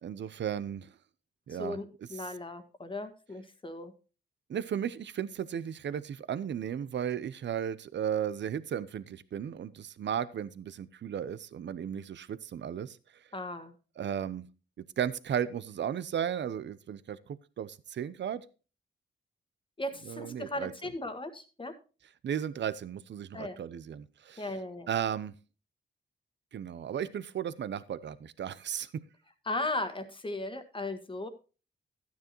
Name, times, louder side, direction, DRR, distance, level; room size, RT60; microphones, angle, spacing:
voice 1, 0.0-0.9 1.5-1.8 4.5-13.0 14.0-14.5 15.0-18.4 20.1-20.7 22.2-24.5 24.9-25.3 26.5-29.0, right 9 dB, 70° right, 17 dB, 0.7 m, -35 dB
voice 2, 1.5-3.9 13.3-13.7 19.8-21.7 23.3-23.6 24.4-24.9 29.5-31.3, left 2 dB, 25° left, 9 dB, 1.5 m, -37 dB
13.0 x 9.5 x 3.0 m, 0.33 s
cardioid pair, 90°, 19 cm